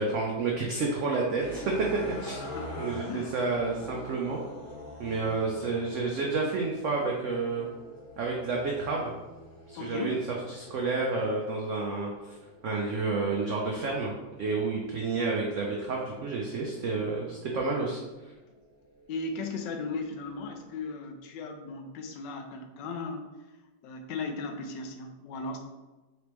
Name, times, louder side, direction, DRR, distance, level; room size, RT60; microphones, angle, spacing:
voice 1, 0.0-1.7 2.0-2.4 2.8-4.4 5.0-7.7 8.2-9.1 9.7-10.2 10.5-12.1 12.6-14.1 14.4-18.0, right 3 dB, 75° right, -1 dB, 0.7 m, -30 dB
sound 1, 1.4-17.7 18.3-20.8, equal, 55° left, 1.6 m, -46 dB
voice 2, 2.5-3.4 9.8-10.1 19.1-23.2 23.8-25.6, left 3 dB, 80° left, 5 dB, 1.2 m, -36 dB
4.2 x 3.3 x 3.0 m, 1.2 s
omnidirectional pair, 1.9 m